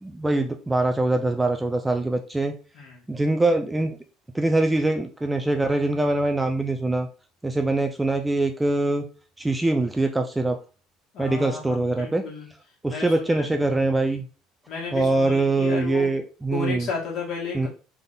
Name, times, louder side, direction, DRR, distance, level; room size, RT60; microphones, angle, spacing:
voice 1, 0.0-2.5 3.1-4.0 4.3-7.1 7.4-9.1 9.4-10.6 11.2-12.2 12.8-14.3 14.9-16.9 17.5-17.7, right 2 dB, 10° right, 6 dB, 0.3 m, -23 dB
voice 2, 11.1-12.5 12.9-13.5 14.7-16.1 16.5-17.7, left 4 dB, 50° left, -3 dB, 1.8 m, -33 dB
3.9 x 3.5 x 2.6 m, 0.36 s
cardioid pair, 135°, 0 cm